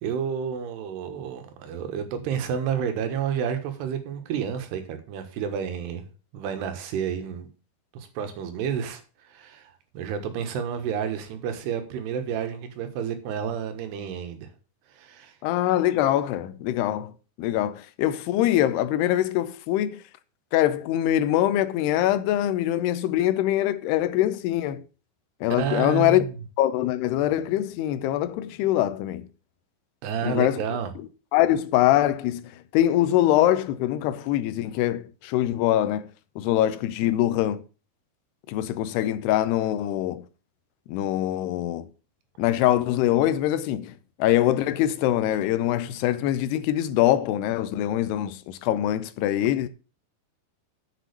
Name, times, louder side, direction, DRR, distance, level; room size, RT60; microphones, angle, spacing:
voice 1, 0.0-6.1 6.3-7.5 7.9-14.5 14.9-15.4 25.6-26.4 30.0-30.9, right 7 dB, 90° right, 3.4 m, -30 dB
voice 2, 15.4-17.1 17.4-20.0 20.5-24.8 25.4-26.2 26.6-29.3 30.2-30.8 31.3-36.1 36.4-37.6 38.5-40.3 40.9-41.9 42.4-49.7, left 13 dB, 90° left, 2.8 m, -23 dB
7.5 x 6.2 x 6.7 m
omnidirectional pair, 4.6 m